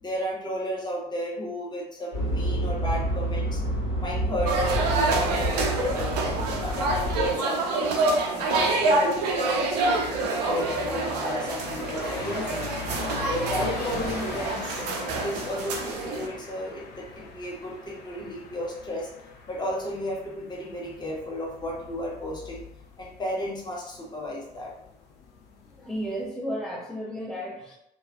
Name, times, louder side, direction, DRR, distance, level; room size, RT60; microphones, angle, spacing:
voice 1, 0.0-3.6 4.0-6.2 6.6-8.0 8.4-12.6 13.2-19.1 19.5-22.7 23.0-24.7, equal, 20° left, -3 dB, 0.9 m, -33 dB
sound 1, 2.1-7.3, equal, 80° left, 1.0 m, -28 dB
sound 2, 4.5-16.3, right 3 dB, 75° right, 0.5 m, -27 dB
sound 3, 7.9-26.3, left 4 dB, 55° left, 0.5 m, -41 dB
voice 2, 25.7-27.7, equal, ahead, -4 dB, 0.5 m, -33 dB
2.9 x 2.4 x 2.4 m, 0.79 s
figure-of-eight pair, 55°, 21 cm